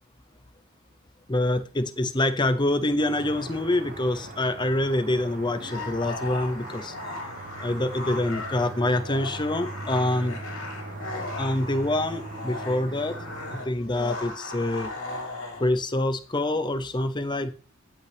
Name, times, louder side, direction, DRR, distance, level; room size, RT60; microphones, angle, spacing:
voice 1, 1.3-6.9 7.6-10.4 11.4-13.2 13.5-14.9 15.5-17.5, left 1 dB, 20° left, 10 dB, 0.7 m, -26 dB
sound 1, 3.0-13.6, right 2 dB, 40° right, 1.5 m, -40 dB
sound 2, 5.5-15.7, left 2 dB, 60° left, 3.5 m, -37 dB
14.5 x 5.5 x 3.4 m, 0.34 s
head